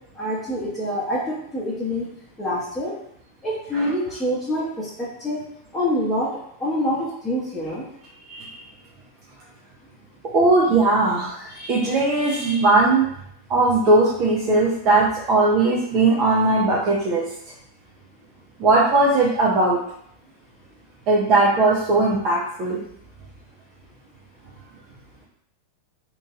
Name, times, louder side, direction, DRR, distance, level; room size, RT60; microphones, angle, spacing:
voice 1, 0.2-2.1 2.4-2.9 3.4-5.4 5.7-6.3 6.6-7.8, equal, 10° left, -9 dB, 1.0 m, -26 dB
voice 2, 10.3-13.1 13.5-17.2 18.6-19.8 21.1-22.8, right 2 dB, 35° right, -5 dB, 0.6 m, -19 dB
3.0 x 2.6 x 2.4 m, 0.70 s
figure-of-eight pair, 90°, 0 cm